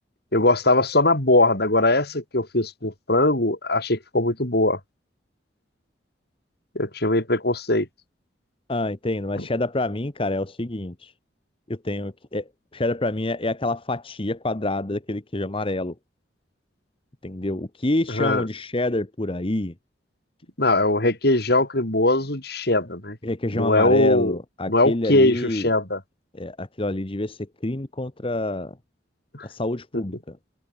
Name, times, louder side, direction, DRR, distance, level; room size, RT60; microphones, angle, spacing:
voice 1, 0.3-4.8 6.8-7.9 9.4-9.5 18.1-18.5 20.6-23.2 23.5-24.4 24.7-26.0 29.3-29.5, left 2 dB, 60° left, 5.4 m, -21 dB
voice 2, 8.7-11.1 11.7-12.5 12.7-15.9 17.2-19.7 23.2-25.7 26.3-28.8 29.4-30.4, left 2 dB, 30° left, 1.2 m, -27 dB
head